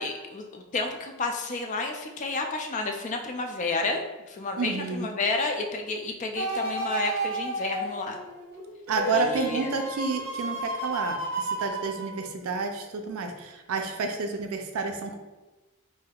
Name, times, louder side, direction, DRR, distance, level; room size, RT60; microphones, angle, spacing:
voice 1, 0.0-4.0 4.3-8.2 9.1-9.7, left 3 dB, 35° left, 3 dB, 0.3 m, -31 dB
voice 2, 4.6-5.1 8.9-15.2, right 4 dB, 80° right, 5 dB, 0.4 m, -30 dB
sound 1, 6.4-12.6 13.1-13.2, right 2 dB, 60° right, 1.1 m, -32 dB
3.4 x 2.6 x 2.3 m, 1.1 s
head